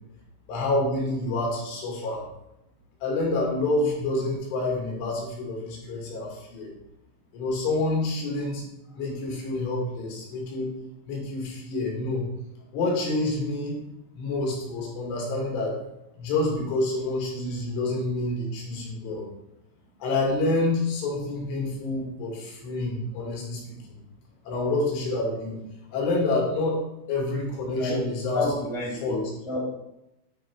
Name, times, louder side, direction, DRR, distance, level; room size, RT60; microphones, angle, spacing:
voice 1, 0.5-2.2 3.0-6.7 7.3-8.6 8.9-10.7 11.0-12.3 12.7-13.8 14.1-15.8 16.1-19.3 20.0-24.0 24.4-25.6 25.9-26.8 27.1-28.4 29.0-29.2, left 2 dB, 75° left, -2 dB, 4.8 m, -28 dB
voice 2, 27.8-29.6, left 1 dB, 5° right, -5 dB, 1.9 m, -30 dB
11.5 x 4.5 x 4.8 m, 0.88 s
omnidirectional pair, 5.7 m